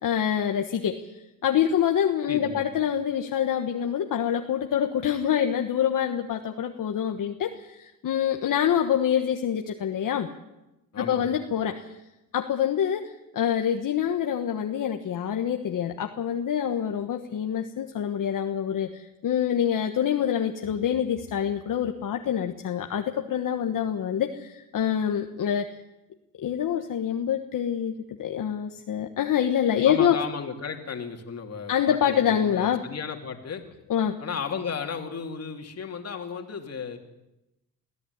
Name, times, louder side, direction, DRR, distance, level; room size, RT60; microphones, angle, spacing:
voice 1, 0.0-1.1 1.4-10.3 11.0-11.9 12.3-25.8 26.4-30.2 31.7-32.8 33.9-34.2, left 9 dB, 60° left, 4 dB, 1.5 m, -26 dB
voice 2, 2.3-2.7 10.9-11.4 29.8-33.6 34.2-37.0, left 6 dB, 45° left, 4 dB, 2.9 m, -34 dB
22.0 x 15.5 x 9.7 m, 0.96 s
cardioid pair, 115°, 36 cm